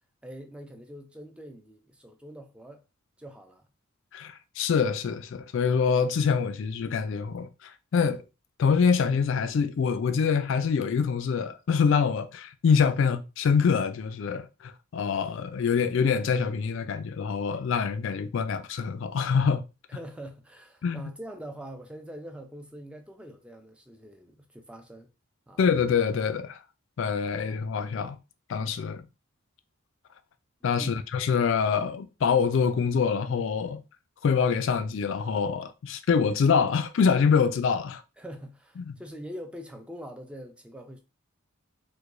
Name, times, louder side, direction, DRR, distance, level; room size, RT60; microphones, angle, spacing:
voice 1, 0.2-2.8 3.2-3.7 19.9-25.1 25.5-25.6 30.8-31.0 38.2-41.0, equal, 5° right, 0.4 m, -43 dB
voice 2, 4.1-8.2 8.6-19.6 20.8-21.1 25.6-26.6 27.0-28.2 28.5-29.0 30.6-33.8 34.2-38.0 38.8-38.9, left 6 dB, 60° left, 0.3 m, -25 dB
4.6 x 2.2 x 2.5 m
head